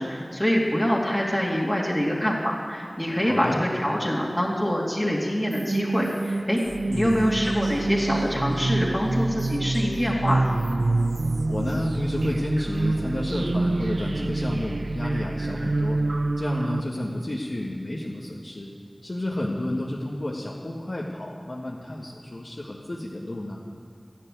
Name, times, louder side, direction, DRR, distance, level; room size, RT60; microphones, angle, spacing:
voice 1, 0.0-6.6 6.9-10.5, equal, 10° left, -4 dB, 2.6 m, -25 dB
voice 2, 3.2-3.6 6.9-7.4 11.5-16.0 16.4-18.7 19.0-23.6, left 1 dB, 50° left, -4 dB, 1.6 m, -31 dB
sound 1, 5.5-16.8, right 2 dB, 80° right, 0.5 m, -27 dB
sound 2, 6.6-16.3, right 1 dB, 60° right, 2.2 m, -38 dB
13.0 x 11.5 x 9.2 m, 2.5 s
wide cardioid pair, 55°, 0 cm